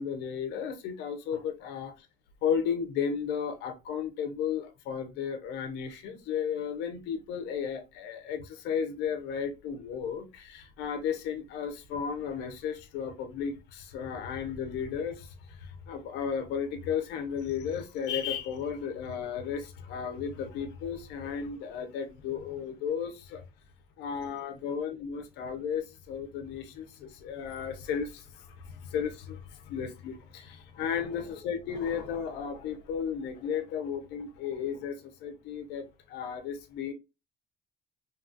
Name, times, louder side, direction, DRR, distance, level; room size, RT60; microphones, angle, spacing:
voice 1, 0.0-1.9 2.4-23.4 24.0-36.9, left 7 dB, 90° left, 0.6 m, -34 dB
2.8 x 2.3 x 2.5 m
cardioid pair, 110°, 17 cm